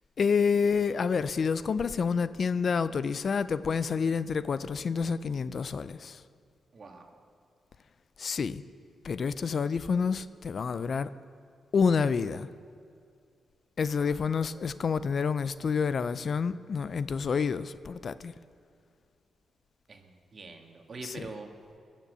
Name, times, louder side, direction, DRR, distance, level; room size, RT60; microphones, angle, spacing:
voice 1, 0.2-6.2 8.2-8.6 9.0-11.1 11.7-12.5 13.8-18.3 21.0-21.3, left 5 dB, 55° left, 15 dB, 0.4 m, -28 dB
voice 2, 6.7-7.2 14.0-14.4 19.9-21.5, right 3 dB, 45° right, 3 dB, 1.8 m, -45 dB
21.5 x 7.4 x 8.0 m, 2.3 s
cardioid pair, 85°, 0 cm